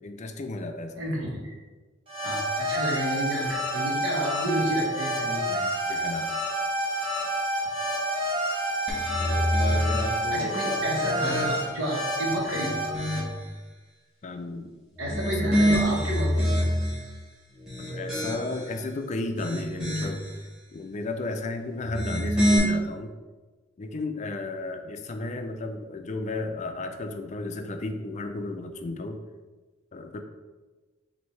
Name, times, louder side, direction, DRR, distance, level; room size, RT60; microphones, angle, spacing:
voice 1, 0.0-1.1 5.9-6.3 9.2-10.9 11.2-11.4 14.2-14.7 15.2-15.6 17.8-20.2 20.7-23.1 23.8-29.2 29.9-30.2, left 2 dB, 40° left, 6 dB, 0.4 m, -34 dB
voice 2, 1.0-1.5 2.2-5.6 10.3-12.8 15.0-16.7, equal, 85° right, -2 dB, 1.3 m, -30 dB
sound 1, 2.1-13.2, right 1 dB, 30° right, 1.2 m, -29 dB
sound 2, 8.9-10.2 10.7-11.9 12.4-13.5 14.9-17.1 17.6-18.7 19.2-20.3 21.8-22.6, equal, ahead, 1.2 m, -27 dB
6.0 x 2.7 x 3.2 m, 1.3 s
head